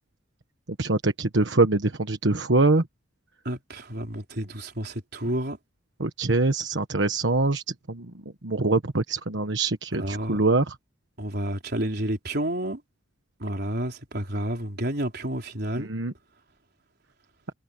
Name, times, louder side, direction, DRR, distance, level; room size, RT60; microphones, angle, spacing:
voice 1, 0.8-2.8 6.0-7.6 7.9-8.1 8.4-10.7 15.8-16.1, right 3 dB, 75° right, 1.3 m, -23 dB
voice 2, 3.4-5.6 10.0-10.4 11.2-12.8 13.4-15.9, right 1 dB, 60° right, 4.4 m, -30 dB
head